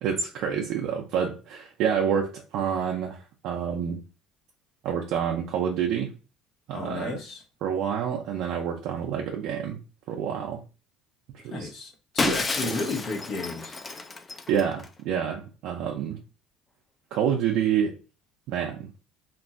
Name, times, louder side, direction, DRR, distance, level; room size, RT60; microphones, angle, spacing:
voice 1, 0.0-4.0 4.8-6.1 6.7-7.2 7.6-9.8 10.1-10.6 11.3-11.7 12.6-12.7 14.5-16.2 17.1-17.9 18.5-18.9, right 8 dB, 70° right, 0.4 m, -28 dB
voice 2, 6.7-7.4 11.4-13.8, left 3 dB, 65° left, 0.9 m, -33 dB
Shatter, 12.2-14.9, left 3 dB, 25° left, 0.4 m, -30 dB
2.9 x 2.5 x 2.4 m
supercardioid pair, 95°, 0 cm